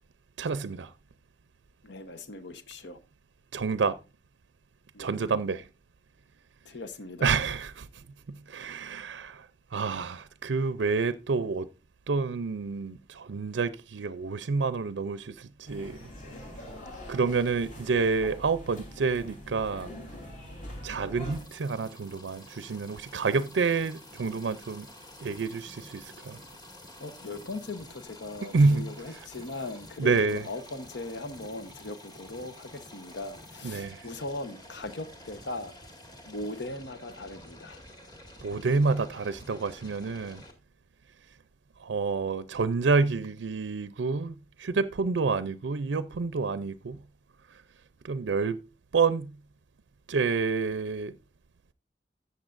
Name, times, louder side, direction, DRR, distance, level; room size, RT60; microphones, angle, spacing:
voice 1, 0.4-0.9 3.5-4.0 5.0-5.7 7.2-9.5 9.7-11.7 12.1-16.0 17.1-19.9 20.8-24.9 25.2-26.4 28.4-29.2 30.0-30.5 33.6-34.1 38.4-40.4 41.8-47.0 48.0-48.6 48.9-49.3 50.1-51.2, right 4 dB, 80° right, 0.5 m, -28 dB
voice 2, 1.8-3.0 4.9-5.1 6.6-7.4 27.0-35.7 36.3-37.8, left 2 dB, 70° left, 1.0 m, -39 dB
sound 1, 15.6-21.4, left 1 dB, 45° left, 3.6 m, -43 dB
sound 2, 21.3-40.5, left 1 dB, 20° left, 2.0 m, -49 dB
13.5 x 8.2 x 2.5 m
head